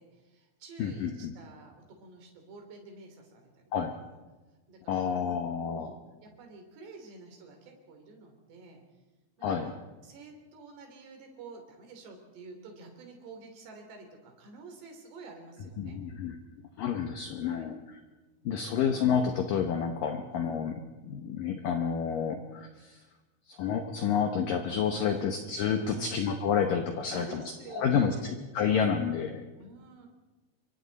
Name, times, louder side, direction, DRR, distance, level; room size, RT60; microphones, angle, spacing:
voice 1, 0.0-4.1 4.7-8.8 9.4-16.0 17.4-17.7 18.4-18.8 20.3-20.6 25.1-25.3 25.8-26.1 27.1-28.2 29.6-30.1, right 3 dB, 60° right, 3 dB, 5.2 m, -49 dB
voice 2, 0.8-1.3 3.7-3.9 4.9-5.9 9.4-9.7 15.8-16.4 16.8-17.8 18.4-20.8 21.0-23.0 23.5-27.4 27.7-29.4, left 7 dB, 90° left, 5 dB, 1.9 m, -29 dB
27.0 x 24.0 x 4.1 m, 1.2 s
omnidirectional pair, 5.6 m